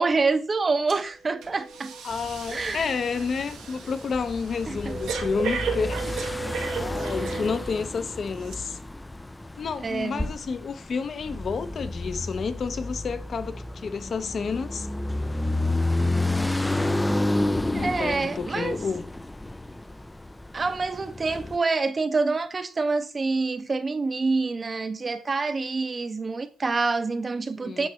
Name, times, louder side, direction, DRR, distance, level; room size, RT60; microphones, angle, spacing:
voice 1, 0.0-1.9 2.5-2.8 4.7-5.0 7.2-7.5 9.8-10.3 17.7-18.8 20.5-27.9, right 3 dB, 30° right, 0.6 m, -27 dB
Breathing, 0.9-1.1 1.4-7.9 8.4-8.5, right 4 dB, 85° right, 1.2 m, -34 dB
voice 2, 2.0-6.0 6.8-8.8 9.6-14.9 17.7-19.0 27.5-27.9, left 5 dB, 50° left, 0.7 m, -30 dB
sound 1, 2.1-21.6, left 2 dB, 10° left, 0.3 m, -31 dB
8.5 x 4.6 x 3.1 m
cardioid pair, 90°, 0 cm